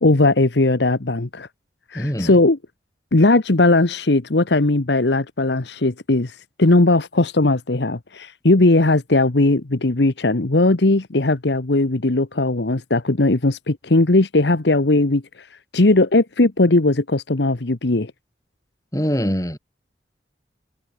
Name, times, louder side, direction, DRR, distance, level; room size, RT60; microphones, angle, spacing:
voice 1, 0.0-1.5 1.9-2.6 3.1-15.5 15.7-18.1, left 2 dB, 70° left, 1.2 m, -18 dB
voice 2, 1.9-2.3 18.9-19.6, equal, 20° left, 6.6 m, -23 dB
head